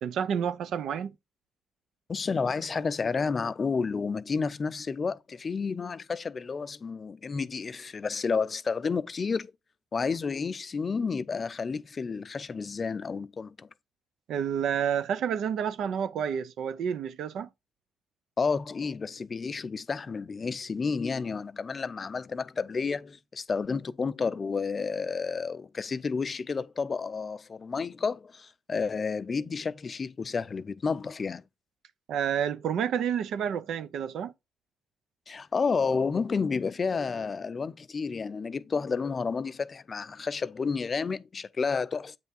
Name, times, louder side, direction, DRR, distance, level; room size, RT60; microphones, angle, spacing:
voice 1, 0.0-1.1 14.3-17.5 32.1-34.3, right 8 dB, 75° right, 0.5 m, -29 dB
voice 2, 2.1-9.5 9.9-13.7 18.4-31.4 35.3-42.2, left 5 dB, 35° left, 0.4 m, -31 dB
8.1 x 3.4 x 4.2 m
cardioid pair, 90°, 0 cm